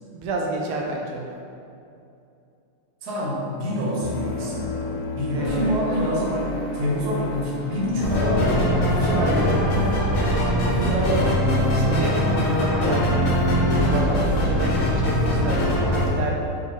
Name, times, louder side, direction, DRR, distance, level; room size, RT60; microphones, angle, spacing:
voice 1, 0.1-1.3 5.3-5.8 11.7-13.2 13.8-16.3, right 3 dB, 80° right, -1 dB, 2.0 m, -30 dB
voice 2, 3.0-6.4 6.7-10.1 10.7-11.4, equal, 65° right, -6 dB, 1.0 m, -26 dB
sound 1, 4.0-10.1, left 2 dB, 80° left, 2.3 m, -32 dB
sound 2, 8.0-16.1, equal, 65° left, 1.3 m, -21 dB
8.0 x 5.0 x 2.7 m, 2.6 s
omnidirectional pair, 3.8 m